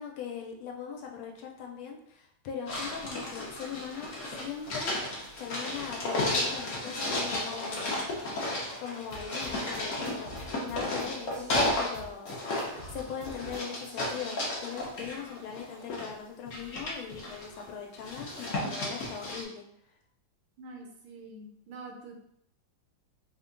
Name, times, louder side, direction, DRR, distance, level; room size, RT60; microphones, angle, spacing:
voice 1, 0.0-8.0 8.8-10.3 10.6-19.7, left 7 dB, 85° left, 1 dB, 1.5 m, -40 dB
sound 1, 2.7-12.0 12.2-16.1 16.5-17.6 18.0-19.4, left 1 dB, 55° left, 0.9 m, -33 dB
sound 2, 9.1-14.1, equal, 35° right, 0.7 m, -47 dB
voice 2, 20.6-22.2, right 2 dB, 75° right, 2 dB, 1.4 m, -46 dB
3.5 x 2.2 x 3.7 m, 0.73 s
omnidirectional pair, 2.2 m